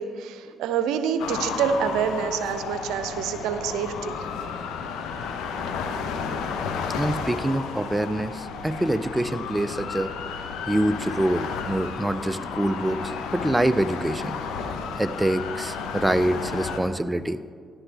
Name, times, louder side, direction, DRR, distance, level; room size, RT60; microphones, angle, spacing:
voice 1, 0.0-4.2, right 7 dB, 80° right, 10 dB, 0.6 m, -27 dB
sound 1, 1.2-16.8, left 5 dB, 75° left, 0.8 m, -32 dB
voice 2, 7.0-10.3 10.7-14.4 15.0-17.4, right 1 dB, 10° right, 13 dB, 0.5 m, -25 dB
13.0 x 11.0 x 3.4 m, 2.1 s
hypercardioid pair, 50°, 0 cm